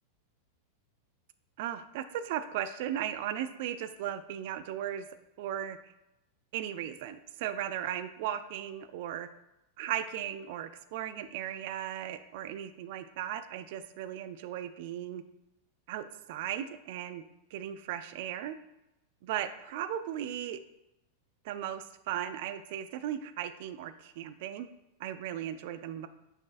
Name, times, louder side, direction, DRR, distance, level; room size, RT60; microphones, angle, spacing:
voice 1, 1.6-5.1 5.4-5.8 6.5-9.3 9.8-15.2 15.9-17.2 17.5-18.6 19.2-20.6 21.4-24.7 25.0-26.1, right 10 dB, 50° right, 11 dB, 0.4 m, -36 dB
6.3 x 6.0 x 2.5 m, 0.89 s
figure-of-eight pair, 90°, 0 cm